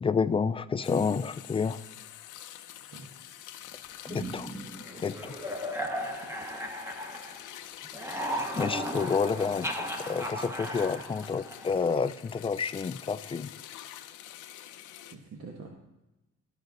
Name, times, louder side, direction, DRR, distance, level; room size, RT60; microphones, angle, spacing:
voice 1, 0.0-1.8 4.1-4.5 5.0-5.4 8.5-9.7 10.0-13.5, left 5 dB, 20° left, 13 dB, 0.3 m, -29 dB
sound 1, 0.8-15.1, left 12 dB, 90° left, 0.6 m, -46 dB
voice 2, 2.8-3.1 6.2-6.6 15.1-15.7, right 4 dB, 55° right, 1 dB, 1.3 m, -47 dB
sound 2, 4.1-7.6 7.8-11.9, equal, 10° right, 1.1 m, -36 dB
13.0 x 5.3 x 4.0 m, 0.99 s
cardioid pair, 90°, 30 cm